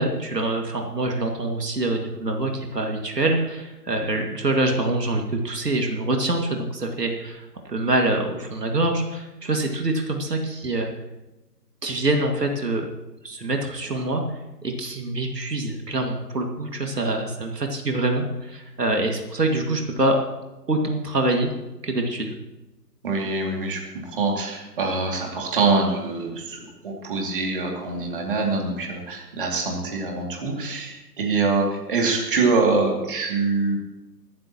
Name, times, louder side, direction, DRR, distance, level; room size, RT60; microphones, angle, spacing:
voice 1, 0.0-10.9 11.8-12.9 13.2-14.2 14.6-20.2 20.7-21.5 21.8-22.3, right 2 dB, 70° right, 3 dB, 2.3 m, -25 dB
voice 2, 23.0-33.8, right 3 dB, 30° right, 0 dB, 2.6 m, -24 dB
23.0 x 13.5 x 3.0 m, 1.0 s
figure-of-eight pair, 150°, 49 cm